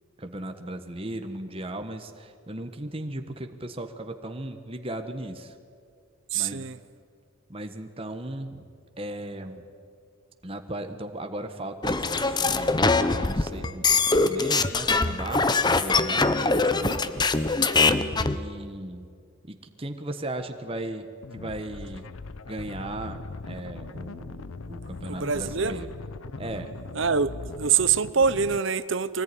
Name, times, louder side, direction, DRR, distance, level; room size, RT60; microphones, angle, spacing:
voice 1, 0.2-5.5 6.3-6.7 7.5-9.6 10.4-15.5 15.7-16.4 18.1-19.1 19.5-21.1 21.3-22.1 22.5-25.9 26.4-26.7, right 1 dB, 25° right, 6 dB, 1.4 m, -37 dB
voice 2, 6.3-6.8 16.8-17.0 25.1-25.8 26.9-29.2, right 6 dB, 60° right, 15 dB, 0.8 m, -25 dB
sound 1, 11.8-18.4, left 3 dB, 20° left, 0.8 m, -23 dB
sound 2, 21.2-28.6, left 3 dB, 75° left, 0.7 m, -40 dB
24.5 x 19.0 x 10.0 m, 2.3 s
head